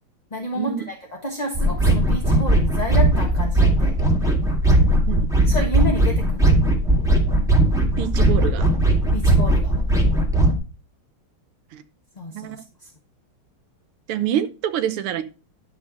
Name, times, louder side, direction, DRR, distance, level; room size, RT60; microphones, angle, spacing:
voice 1, 0.3-0.9 1.2-4.0 5.5-6.6 9.1-9.7 12.2-12.9, left 1 dB, 25° left, 1 dB, 1.1 m, -29 dB
sound 1, 1.5-10.5, right 1 dB, ahead, 1.9 m, -18 dB
voice 2, 8.0-8.7 11.7-11.8 12.3-12.6 14.1-15.2, right 10 dB, 80° right, 10 dB, 1.8 m, -26 dB
12.0 x 4.3 x 6.4 m, 0.34 s
omnidirectional pair, 2.4 m